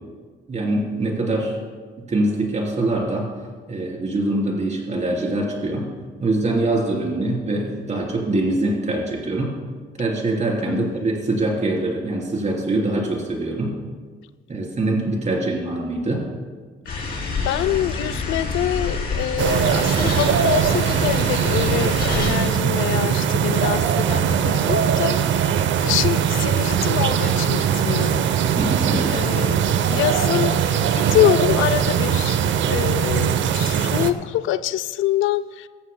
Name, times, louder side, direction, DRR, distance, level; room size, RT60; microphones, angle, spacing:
voice 1, 0.5-1.6 2.1-3.3 3.7-5.9 6.2-9.6 10.0-13.8 14.5-16.3 28.6-29.2, right 2 dB, 35° right, -1 dB, 3.6 m, -23 dB
sound 1, 16.9-22.3, left 3 dB, 50° left, 3.1 m, -28 dB
voice 2, 17.4-28.2 29.1-32.4 32.7-35.7, left 13 dB, 85° left, 13 dB, 0.4 m, -25 dB
sound 2, 19.4-34.1, right 8 dB, 70° right, 0.7 m, -20 dB
18.0 x 14.0 x 2.2 m, 1.5 s
cardioid pair, 90°, 20 cm